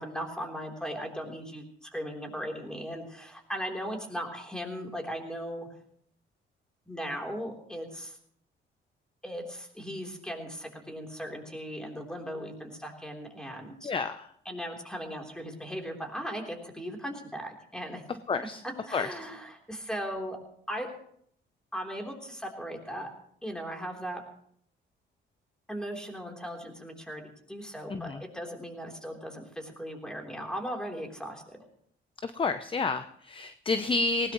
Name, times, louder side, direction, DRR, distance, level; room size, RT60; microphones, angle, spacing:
voice 1, 0.0-5.7 6.9-8.2 9.2-13.9 14.5-18.0 18.9-20.4 20.7-20.9 21.7-23.1 23.4-24.2 25.7-27.2 27.5-31.6, equal, 5° left, 1 dB, 3.5 m, -38 dB
voice 2, 13.8-14.3 18.3-18.6 18.9-19.1 27.9-28.2 32.2-34.3, left 4 dB, 25° left, 11 dB, 0.7 m, -30 dB
18.5 x 17.5 x 3.1 m, 0.67 s
cardioid pair, 90°, 20 cm